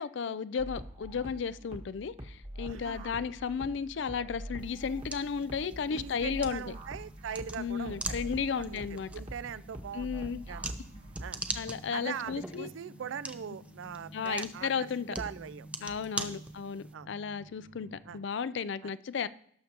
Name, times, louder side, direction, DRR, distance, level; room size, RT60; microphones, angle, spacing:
voice 1, 0.0-6.6 7.6-9.1 9.9-10.4 11.5-12.7 14.1-15.2 15.8-19.3, left 6 dB, 70° left, 16 dB, 0.4 m, -34 dB
sound 1, 0.6-11.6, equal, 35° right, 1.2 m, -45 dB
sound 2, 2.3-18.3, right 1 dB, 40° left, 1.2 m, -55 dB
voice 2, 2.7-3.1 5.9-8.2 8.5-10.1 10.5-10.7 11.2-11.4 11.9-15.7 16.2-16.4 16.9-17.1 18.0-18.2 18.8-18.9, right 7 dB, 90° right, 18 dB, 0.4 m, -41 dB
sound 3, 4.6-16.9, right 1 dB, 5° right, 0.5 m, -43 dB
17.5 x 6.6 x 2.9 m, 0.65 s
head